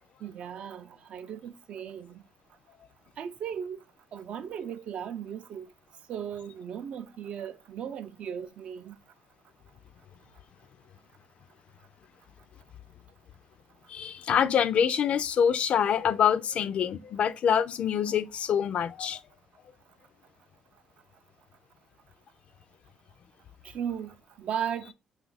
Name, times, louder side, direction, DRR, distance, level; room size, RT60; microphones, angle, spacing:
voice 1, 0.2-2.2 3.2-3.8 4.1-5.7 6.1-9.0 23.6-24.9, right 8 dB, 65° right, 0.4 m, -36 dB
voice 2, 13.9-19.2, left 8 dB, 60° left, 0.3 m, -25 dB
5.8 x 2.3 x 3.9 m
cardioid pair, 95°, 2 cm